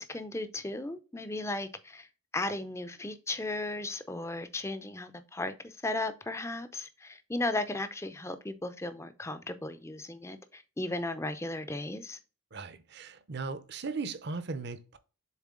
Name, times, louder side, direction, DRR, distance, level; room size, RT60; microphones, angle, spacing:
voice 1, 0.0-2.1 2.3-12.2, left 2 dB, 10° left, 0.5 m, -36 dB
voice 2, 12.5-15.0, right 4 dB, 50° right, 0.6 m, -37 dB
7.4 x 3.8 x 3.7 m
head